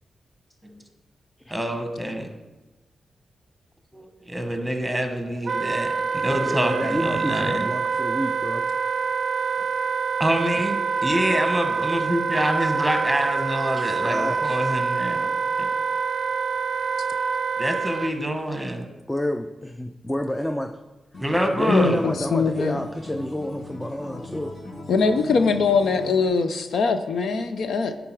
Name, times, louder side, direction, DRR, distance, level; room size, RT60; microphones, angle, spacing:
voice 1, 1.5-2.3 3.9-5.9 6.2-7.7 10.2-15.3 15.6-15.7 17.6-18.8 21.2-22.0, equal, 5° right, 5 dB, 1.2 m, -26 dB
Wind instrument woodwind instrument, 5.4-18.1, right 5 dB, 60° right, 0.3 m, -26 dB
voice 2, 6.4-8.7 10.9-11.1 13.8-14.6 17.1-17.2 19.1-20.7 21.6-24.5, left 1 dB, 10° left, 6 dB, 0.4 m, -29 dB
Acoustic guitar, 21.1-26.3, left 2 dB, 50° left, 1.5 m, -39 dB
voice 3, 21.7-22.8 24.9-28.0, left 4 dB, 80° left, 8 dB, 0.5 m, -22 dB
10.5 x 3.8 x 4.6 m, 1.2 s
cardioid pair, 80°, 0 cm